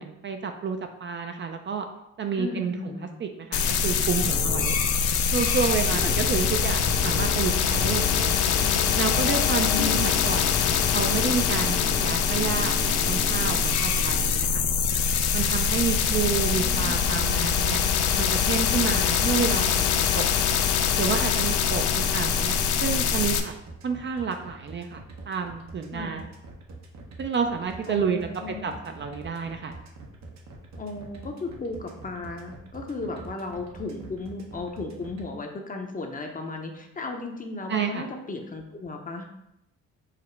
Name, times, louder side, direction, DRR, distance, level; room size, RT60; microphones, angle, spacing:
voice 1, 0.0-1.9 2.2-2.9 3.2-4.7 5.3-8.5 9.0-14.6 15.3-17.8 18.1-20.6 21.0-23.5 23.8-26.2 27.2-28.3 28.6-29.7 37.7-38.0, right 6 dB, 40° right, 5 dB, 0.4 m, -30 dB
voice 2, 2.4-3.2 5.9-6.2 9.6-10.0 16.2-17.1 25.9-26.2 27.9-28.8 30.8-39.3, left 3 dB, 30° left, 3 dB, 0.7 m, -35 dB
sound 1, 3.5-23.4, left 7 dB, 85° left, 0.5 m, -24 dB
sound 2, 4.2-14.3, left 4 dB, 60° left, 1.0 m, -35 dB
sound 3, 19.1-35.2, right 3 dB, 65° right, 0.8 m, -44 dB
4.9 x 2.0 x 4.5 m, 0.83 s
cardioid pair, 90°, 30 cm